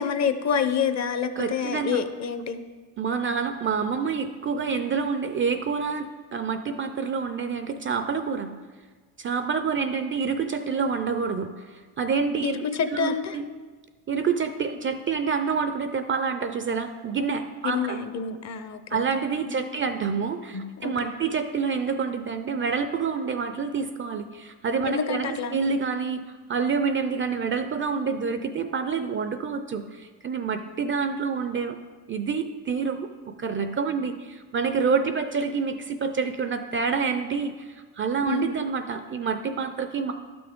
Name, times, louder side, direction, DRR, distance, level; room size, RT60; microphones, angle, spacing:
voice 1, 0.0-2.6 12.4-13.4 17.6-19.0 19.7-19.8 20.5-21.1 24.8-25.6 38.3-38.5, left 7 dB, 40° left, 10 dB, 0.6 m, -28 dB
voice 2, 1.4-2.0 3.0-8.5 9.2-12.6 12.9-13.5 14.1-18.0 18.9-26.2 26.5-31.8 32.1-40.1, right 5 dB, 30° right, 9 dB, 0.4 m, -27 dB
11.5 x 6.0 x 3.6 m, 1.4 s
cardioid pair, 100°, 44 cm